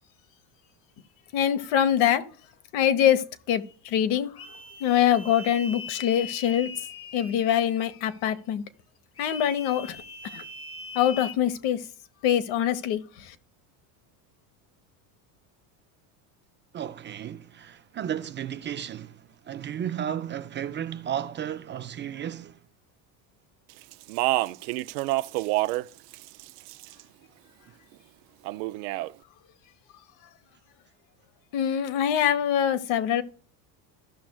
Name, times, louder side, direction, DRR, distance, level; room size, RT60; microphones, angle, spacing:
voice 1, 1.3-2.2 2.7-4.3 4.8-6.7 7.1-8.6 9.2-10.0 10.3-10.4 10.9-11.8 12.2-13.0 13.3-13.4 31.5-33.2, left 10 dB, 65° left, 1.2 m, -24 dB
sound 1, 4.4-8.2 9.2-11.3, left 4 dB, 30° left, 1.0 m, -41 dB
voice 2, 16.7-22.6, right 9 dB, 25° right, 0.4 m, -34 dB
Speech, 23.9-25.9 26.1-27.0 28.4-29.1, right 19 dB, 75° right, 0.6 m, -27 dB
14.5 x 5.9 x 2.3 m
supercardioid pair, 105°, 48 cm